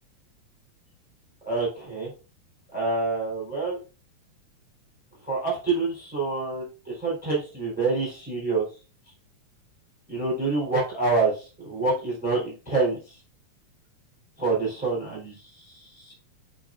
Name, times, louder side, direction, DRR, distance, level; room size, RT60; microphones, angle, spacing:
voice 1, 1.4-2.1 2.7-3.8 5.2-8.6 10.1-13.2 14.4-16.1, right 3 dB, 5° right, -3 dB, 3.3 m, -27 dB
8.7 x 5.2 x 2.5 m, 0.33 s
omnidirectional pair, 3.6 m